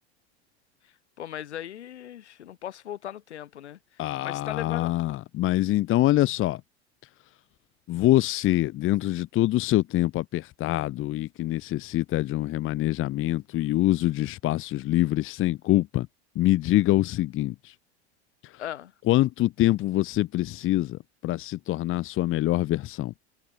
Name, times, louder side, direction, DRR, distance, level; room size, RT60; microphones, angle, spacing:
voice 1, 0.8-4.9 18.6-18.9, left 11 dB, 80° left, 5.4 m, -38 dB
voice 2, 4.0-6.6 7.9-16.1 16.3-17.7 19.1-23.1, left 15 dB, 40° left, 1.2 m, -25 dB
hypercardioid pair, 95°, 34 cm